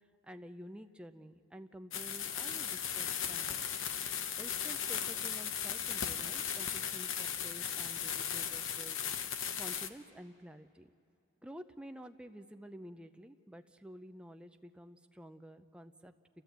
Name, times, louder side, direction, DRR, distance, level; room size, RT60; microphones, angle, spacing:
voice 1, 0.2-3.7 4.4-10.9 11.4-16.1, equal, 5° right, 7 dB, 0.5 m, -51 dB
sound 1, 1.9-9.9, left 8 dB, 65° left, 0.8 m, -37 dB
29.0 x 13.5 x 8.0 m, 2.7 s
head